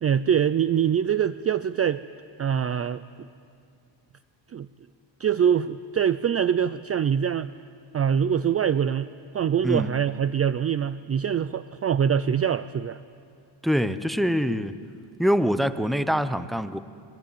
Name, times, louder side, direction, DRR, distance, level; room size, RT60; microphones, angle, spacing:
voice 1, 0.0-2.0 2.4-3.0 4.5-4.7 5.2-7.5 7.9-13.0, right 8 dB, 30° right, 14 dB, 0.5 m, -24 dB
voice 2, 13.6-14.8 15.2-16.8, equal, ahead, 12 dB, 0.9 m, -24 dB
25.0 x 22.0 x 9.1 m, 2.4 s
cardioid pair, 100°, 49 cm